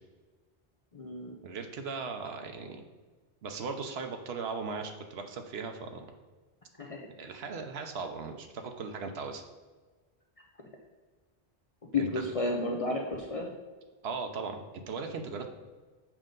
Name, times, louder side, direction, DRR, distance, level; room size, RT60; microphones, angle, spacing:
voice 1, 0.9-1.3 6.8-7.0 11.9-13.5, left 3 dB, 40° left, 0 dB, 0.7 m, -32 dB
voice 2, 1.4-2.8 3.4-6.1 7.2-9.4 12.0-12.2 14.0-15.5, right 4 dB, 85° right, 5 dB, 1.0 m, -38 dB
7.3 x 5.3 x 3.8 m, 1.4 s
omnidirectional pair, 1.0 m